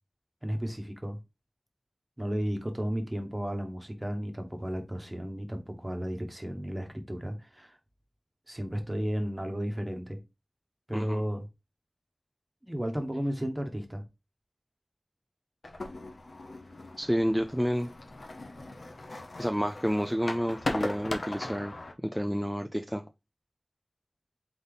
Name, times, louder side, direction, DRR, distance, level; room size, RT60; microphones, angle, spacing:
voice 1, 0.4-1.2 2.2-7.8 8.5-10.2 10.9-11.5 12.6-14.0, equal, 20° right, 1.1 m, -33 dB
sound 1, 15.6-21.9, left 2 dB, 70° left, 0.8 m, -38 dB
voice 2, 17.0-17.9 19.4-21.7 22.0-23.0, equal, ahead, 0.4 m, -29 dB
3.9 x 3.4 x 3.8 m
wide cardioid pair, 50°, 0 cm